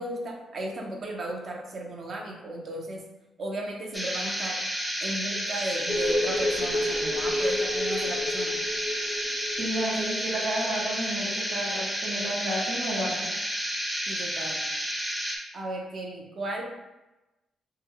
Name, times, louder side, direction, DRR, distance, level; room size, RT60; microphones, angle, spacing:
voice 1, 0.0-3.0 3.4-4.6 5.0-8.6 14.1-14.6 15.5-16.6, right 1 dB, 50° right, 0 dB, 0.7 m, -35 dB
sound 1, 3.9-15.4, equal, 5° right, 0.7 m, -31 dB
sound 2, 5.9-11.1 11.4-11.5, left 1 dB, 25° left, 0.3 m, -30 dB
voice 2, 9.6-13.3, right 1 dB, 70° right, -5 dB, 0.9 m, -31 dB
3.6 x 2.2 x 3.3 m, 1.0 s
cardioid pair, 110°, 0 cm